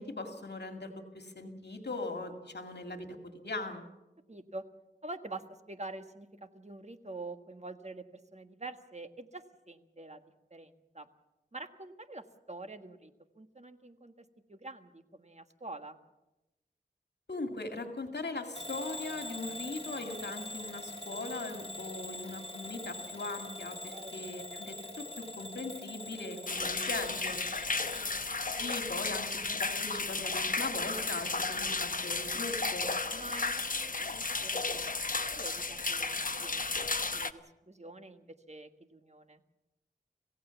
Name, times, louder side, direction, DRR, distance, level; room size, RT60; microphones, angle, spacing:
voice 1, 0.0-3.9 17.3-27.4 28.5-32.9, left 2 dB, 75° left, 5 dB, 2.2 m, -40 dB
voice 2, 4.3-4.6 5.0-10.2 10.5-11.1 11.5-16.0 23.9-24.2 27.9-28.3 33.1-39.4, right 2 dB, 40° right, 8 dB, 1.6 m, -46 dB
Bell / Alarm, 18.5-28.1, left 1 dB, 30° left, 2.1 m, -43 dB
sound 1, 26.5-37.3, left 3 dB, 50° left, 1.0 m, -33 dB
26.0 x 16.5 x 7.1 m, 0.99 s
wide cardioid pair, 65°, 18 cm